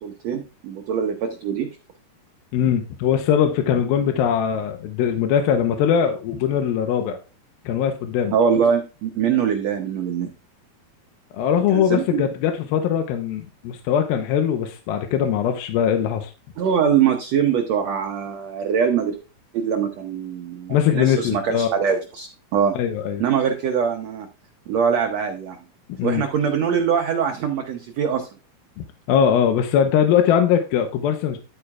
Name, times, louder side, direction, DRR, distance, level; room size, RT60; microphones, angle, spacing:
voice 1, 0.0-1.7 8.3-10.3 11.7-12.2 16.6-19.2 19.5-22.7 23.2-24.3 24.7-25.6 26.0-28.3, right 7 dB, 85° right, 5 dB, 1.5 m, -23 dB
voice 2, 2.5-7.2 7.7-8.3 11.3-16.3 20.7-21.7 22.8-23.2 25.9-26.2 28.8-31.4, left 8 dB, 85° left, 6 dB, 2.7 m, -21 dB
11.5 x 8.8 x 2.4 m, 0.33 s
omnidirectional pair, 4.3 m